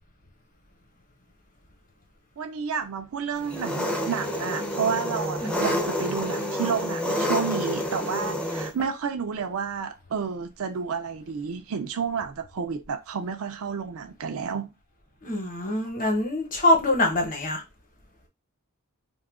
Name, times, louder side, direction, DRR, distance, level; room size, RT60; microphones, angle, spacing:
voice 1, 2.4-14.7, right 6 dB, 65° right, 0.4 m, -30 dB
Engine, 3.4-8.7, equal, 5° left, 0.5 m, -28 dB
voice 2, 5.4-5.8 15.2-17.6, left 1 dB, 40° left, 1.0 m, -24 dB
2.7 x 2.4 x 3.6 m
head